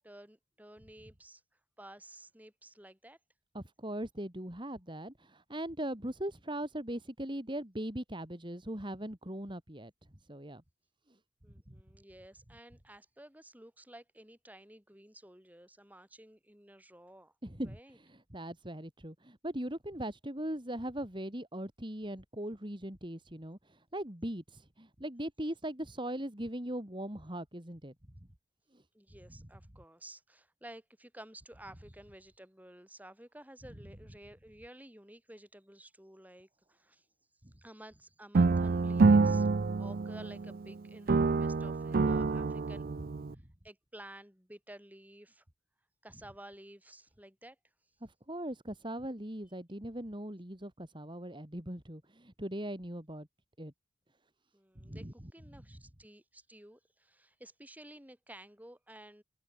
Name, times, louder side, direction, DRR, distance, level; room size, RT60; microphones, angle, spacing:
voice 1, 0.0-1.4 1.8-3.2 11.4-17.3 17.6-18.0 28.9-37.1 37.6-39.5 39.8-42.8 43.6-45.4 46.0-47.6 54.5-59.2, right 1 dB, 10° right, 5.5 m, -53 dB
voice 2, 3.5-9.9 10.3-10.6 11.7-11.8 17.4-27.9 28.7-28.8 43.3-43.4 48.0-53.3 53.6-53.7 54.8-55.1, right 1 dB, 25° right, 3.0 m, -40 dB
sound 1, 38.3-40.7 41.1-43.3, right 4 dB, 50° right, 0.4 m, -27 dB
head